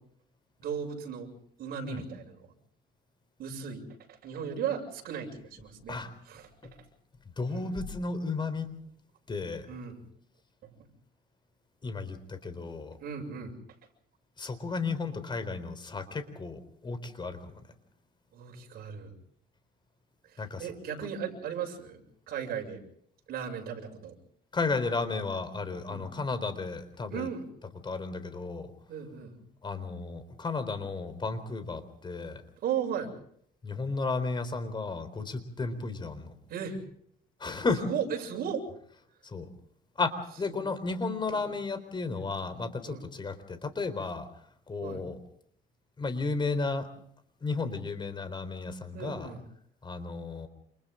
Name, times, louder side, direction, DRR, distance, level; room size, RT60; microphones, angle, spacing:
voice 1, 0.6-1.3 1.6-2.4 3.4-3.8 4.2-6.0 6.3-6.4 7.5-7.8 9.7-9.9 13.0-13.5 18.3-19.1 20.6-22.8 23.3-24.1 25.9-26.1 27.1-27.4 28.9-29.4 32.6-33.1 35.6-35.7 36.5-36.8 37.8-38.6 40.6-40.7 41.2-41.4 42.8-43.0 44.8-45.0 48.9-49.4, right 8 dB, 65° right, 1 dB, 7.2 m, -36 dB
voice 2, 7.4-8.7 9.3-9.7 11.8-13.0 14.4-17.6 20.4-20.7 24.5-27.3 27.8-28.7 29.6-32.4 33.6-36.3 37.4-37.8 39.2-39.5 40.0-44.3 44.7-45.2 46.0-46.9 47.4-49.3 49.8-50.5, left 3 dB, 25° left, 10 dB, 4.0 m, -33 dB
29.0 x 28.5 x 3.8 m, 0.66 s
cardioid pair, 110°, 17 cm